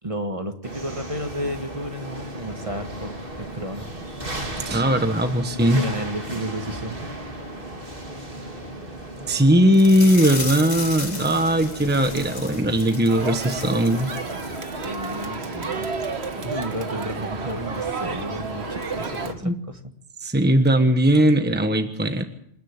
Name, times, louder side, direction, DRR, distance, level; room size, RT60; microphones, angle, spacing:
voice 1, 0.0-3.1 3.4-3.9 5.7-7.1 14.7-15.9 16.3-19.8, right 1 dB, 30° right, 6 dB, 1.8 m, -32 dB
sound 1, 0.6-19.3, right 1 dB, 55° right, 3.0 m, -36 dB
voice 2, 4.6-5.8 9.3-14.1 19.4-19.6 20.2-22.2, right 1 dB, 10° right, 6 dB, 1.2 m, -19 dB
sound 2, 9.7-14.8 15.1-15.2 15.6-15.7, left 2 dB, 40° left, 2.1 m, -35 dB
Crowd, 13.1-19.3, right 5 dB, 70° right, 1.7 m, -32 dB
27.5 x 10.5 x 9.7 m, 0.72 s
omnidirectional pair, 1.1 m